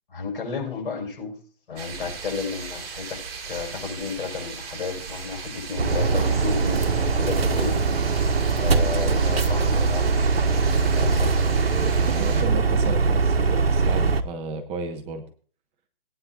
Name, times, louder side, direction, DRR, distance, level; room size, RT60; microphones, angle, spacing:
voice 1, 0.1-1.3 1.7-7.8 8.6-10.3 10.8-11.3, left 5 dB, 60° left, 1 dB, 5.9 m, -32 dB
sound 1, 1.8-12.4, right 5 dB, 40° right, 3.2 m, -37 dB
sound 2, 5.8-14.2, right 4 dB, 85° right, 1.2 m, -21 dB
voice 2, 12.0-15.2, right 4 dB, 20° right, 6 dB, 1.1 m, -33 dB
18.5 x 9.7 x 2.4 m, 0.41 s
hypercardioid pair, 135°, 29 cm